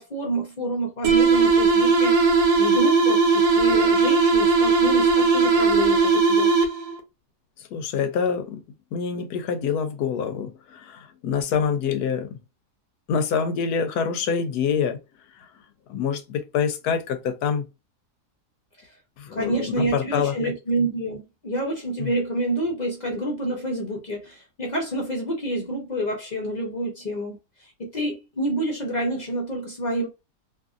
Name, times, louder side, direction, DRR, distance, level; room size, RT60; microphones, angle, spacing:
voice 1, 0.0-6.5 18.8-18.9 19.3-30.1, right 1 dB, 40° left, 0.6 m, -28 dB
sound 1, 1.0-7.0, right 4 dB, 80° right, 1.2 m, -18 dB
voice 2, 7.7-8.6 8.9-12.4 13.1-15.0 15.9-17.6 19.2-20.3 22.0-22.1, left 6 dB, 75° left, 1.1 m, -26 dB
2.8 x 2.6 x 2.4 m
omnidirectional pair, 1.7 m